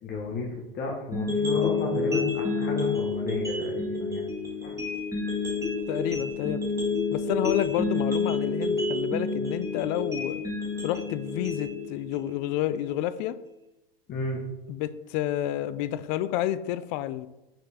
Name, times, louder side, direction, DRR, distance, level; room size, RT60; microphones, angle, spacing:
voice 1, 0.0-4.2 4.6-4.8 14.1-14.4, left 4 dB, 35° left, -2 dB, 1.2 m, -32 dB
sound 1, 1.1-13.1, left 3 dB, 10° right, 1.9 m, -29 dB
voice 2, 5.9-6.6 7.1-10.4 10.8-13.4 14.7-17.3, left 12 dB, 50° left, 15 dB, 0.5 m, -30 dB
6.3 x 4.5 x 4.1 m, 0.97 s
hypercardioid pair, 110°, 29 cm